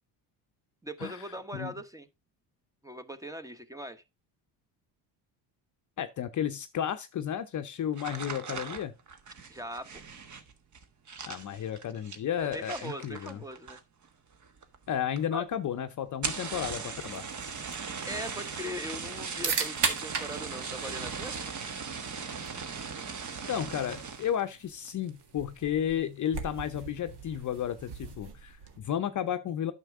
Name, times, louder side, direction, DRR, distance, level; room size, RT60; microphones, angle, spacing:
voice 1, 0.8-2.1 2.8-4.0 9.5-10.0 12.4-13.8 15.3-15.4 18.1-21.4, equal, 5° right, 0.9 m, -40 dB
voice 2, 6.0-8.9 11.3-13.4 14.9-17.2 23.5-29.7, left 9 dB, 40° left, 0.7 m, -33 dB
sound 1, 7.9-14.1 14.3-14.9 15.2-15.3 15.5-15.6 16.1-24.4 24.9-25.2 25.6-26.0, right 5 dB, 40° right, 1.3 m, -39 dB
sound 2, 17.0-29.0, right 5 dB, 60° right, 1.8 m, -39 dB
9.0 x 6.4 x 3.6 m
supercardioid pair, 85°, 45 cm